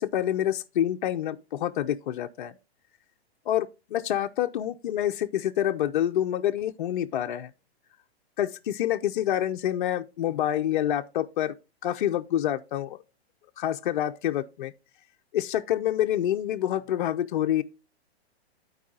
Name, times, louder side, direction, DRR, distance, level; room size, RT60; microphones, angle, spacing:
voice 1, 0.0-2.5 3.5-7.5 8.4-11.5 11.8-13.0 13.6-14.7 15.3-17.6, left 11 dB, 50° left, 0.6 m, -27 dB
13.5 x 4.7 x 2.4 m
hypercardioid pair, 165°, 32 cm